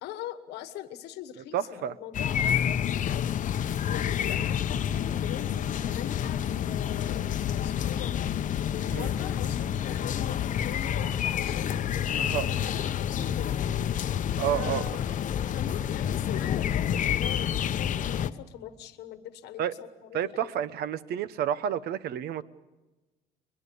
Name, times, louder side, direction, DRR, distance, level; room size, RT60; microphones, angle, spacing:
voice 1, 0.0-3.4 3.8-8.1 8.7-12.8 13.0-14.1 14.5-15.2 15.5-20.6, left 11 dB, 80° left, 10 dB, 1.3 m, -42 dB
voice 2, 1.5-1.9 8.9-9.1 12.2-12.5 14.4-15.0 19.6-19.7 20.1-22.4, right 10 dB, 70° right, 15 dB, 0.9 m, -30 dB
sound 1, 2.1-18.3, left 9 dB, 50° left, 0.8 m, -29 dB
22.0 x 22.0 x 6.9 m, 1.1 s
cardioid pair, 110°, 17 cm